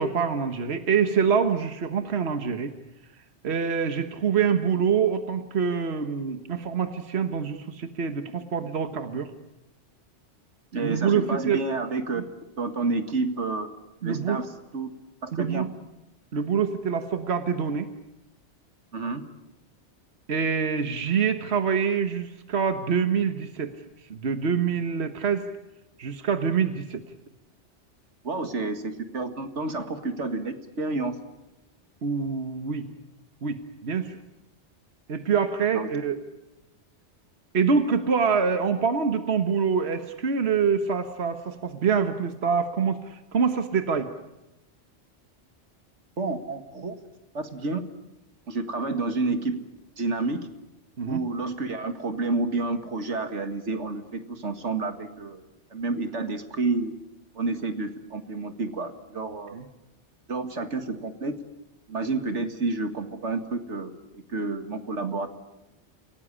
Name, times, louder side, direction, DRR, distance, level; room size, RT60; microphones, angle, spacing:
voice 1, 0.0-2.7 3.4-9.3 10.7-11.6 12.1-12.2 14.0-14.4 15.3-15.7 16.3-17.9 20.3-23.8 24.1-25.5 26.0-27.0 32.0-32.9 33.4-34.2 35.1-36.2 37.5-44.1 51.0-51.2 59.5-59.7, right 6 dB, 60° right, 8 dB, 1.5 m, -25 dB
voice 2, 10.7-12.2 12.6-13.7 14.0-14.5 14.7-14.9 15.2-15.7 18.9-19.3 28.2-31.2 35.7-35.9 46.2-46.9 47.3-47.8 48.5-49.6 50.0-50.5 51.1-55.4 55.7-57.0 57.4-59.6 60.3-61.4 61.9-65.3, right 3 dB, 80° right, 8 dB, 2.2 m, -29 dB
28.5 x 18.0 x 10.0 m, 0.95 s
omnidirectional pair, 1.2 m